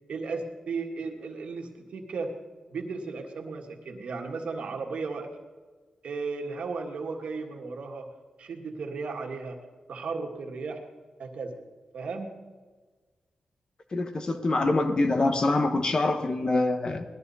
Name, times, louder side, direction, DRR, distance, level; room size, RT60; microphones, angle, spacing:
voice 1, 0.1-2.3 2.7-5.3 6.0-8.1 8.4-9.6 9.9-10.8 11.2-11.6 11.9-12.4, right 4 dB, 70° right, 2 dB, 1.8 m, -35 dB
voice 2, 13.9-17.0, left 2 dB, 40° left, 7 dB, 1.2 m, -25 dB
19.5 x 13.0 x 4.2 m, 1.4 s
cardioid pair, 90°, 2 cm